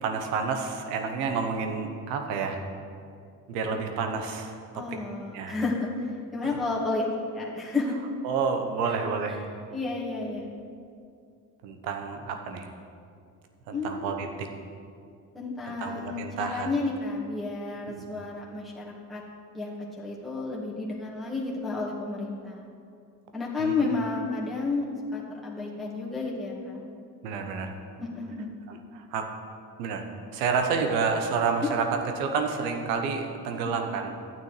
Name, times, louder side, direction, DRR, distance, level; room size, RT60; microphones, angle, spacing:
voice 1, 0.0-2.6 3.5-4.8 5.3-5.6 6.4-6.6 8.2-9.4 11.6-12.7 13.7-14.5 15.8-16.7 17.9-18.0 23.6-23.9 27.2-27.8 28.7-29.3 29.8-31.9 32.2-34.1, right 5 dB, 80° right, 5 dB, 1.1 m, -29 dB
voice 2, 4.7-5.9 6.3-7.0 7.3-8.0 8.9-9.0 9.7-10.5 13.7-14.2 15.3-19.2 19.5-22.7 23.3-24.9 25.1-26.8 28.0-28.5 31.6-31.7, left 3 dB, ahead, -6 dB, 1.9 m, -31 dB
12.0 x 9.1 x 3.2 m, 2.4 s
hypercardioid pair, 60°, 49 cm